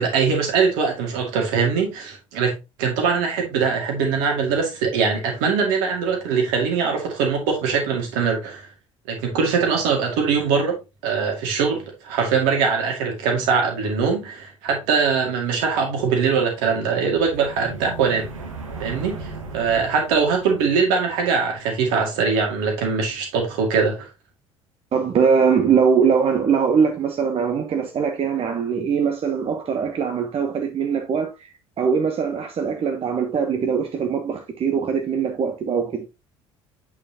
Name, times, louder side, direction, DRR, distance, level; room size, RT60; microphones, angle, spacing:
voice 1, 0.0-2.5 2.8-8.7 9.1-10.8 11.0-18.3 18.8-24.1, right 5 dB, 60° right, 2.2 m, -22 dB
sound 1, 17.1-21.1, right 3 dB, 80° right, 1.3 m, -37 dB
voice 2, 24.9-31.5 31.8-36.1, right 6 dB, 35° right, 1.0 m, -21 dB
8.6 x 4.7 x 2.9 m
figure-of-eight pair, 55°, 17 cm